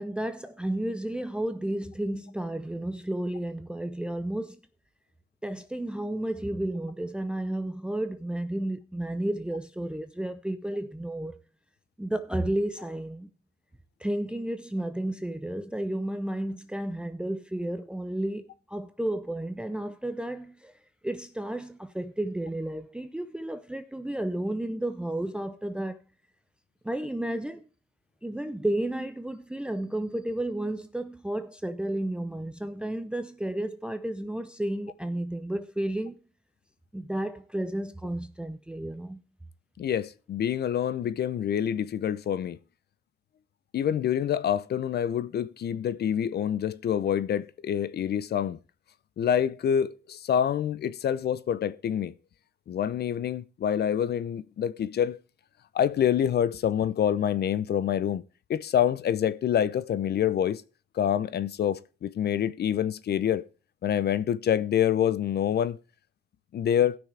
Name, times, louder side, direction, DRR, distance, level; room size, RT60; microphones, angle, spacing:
voice 1, 0.0-4.6 5.4-11.3 12.0-13.3 14.0-20.7 21.0-26.0 26.8-27.6 28.2-36.2 36.9-39.2, right 1 dB, 5° right, 0.6 m, -32 dB
voice 2, 39.8-42.6 43.7-48.6 49.2-52.1 52.7-55.2 55.7-58.2 58.5-60.6 61.0-63.4 63.8-65.8 66.5-66.9, left 9 dB, 55° left, 0.6 m, -26 dB
17.0 x 6.2 x 3.3 m
cardioid pair, 90°, 20 cm